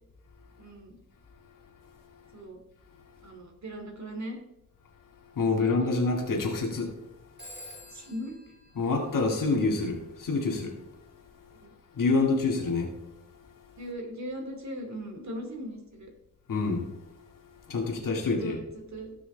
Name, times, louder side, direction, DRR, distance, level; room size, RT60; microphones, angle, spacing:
voice 1, 0.6-1.0 2.3-2.6 3.2-4.4 5.6-6.0 7.9-8.5 11.6-11.7 13.8-16.1 17.8-19.2, equal, 60° right, 2.8 m, -39 dB
voice 2, 5.4-6.9 8.8-10.7 12.0-12.9 16.5-16.9 17.7-18.6, left 3 dB, 85° left, 2.2 m, -27 dB
Telephone, 7.4-9.9, left 1 dB, 35° right, 3.3 m, -49 dB
17.0 x 6.4 x 3.4 m
cardioid pair, 80°, 32 cm